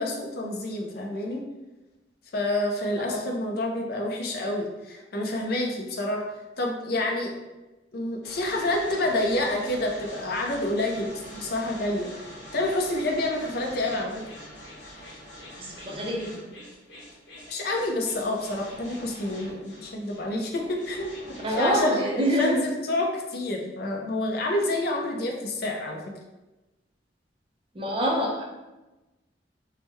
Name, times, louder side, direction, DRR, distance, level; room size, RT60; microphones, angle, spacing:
voice 1, 0.0-1.4 2.3-6.2 6.6-7.3 7.9-12.1 12.5-14.2 17.5-21.1 21.5-26.0, left 1 dB, 55° left, 1 dB, 0.5 m, -28 dB
sound 1, 8.2-21.8, equal, 75° left, 1.1 m, -44 dB
voice 2, 15.6-16.4 21.4-22.6 27.7-28.4, equal, 30° right, -1 dB, 0.5 m, -26 dB
3.5 x 2.1 x 3.1 m, 1.1 s
head